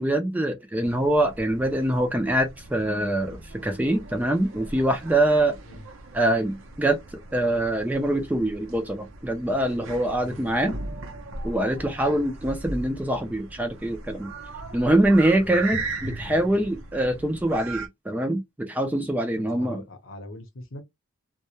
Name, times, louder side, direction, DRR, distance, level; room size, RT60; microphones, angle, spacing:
voice 1, 0.0-5.6 6.1-7.0 7.3-10.8 11.4-14.3 14.7-19.8, right 1 dB, 10° right, 0.3 m, -24 dB
sound 1, 0.8-17.9, right 3 dB, 65° right, 0.6 m, -39 dB
voice 2, 19.4-20.8, left 1 dB, 65° left, 0.8 m, -41 dB
2.2 x 2.0 x 2.8 m
head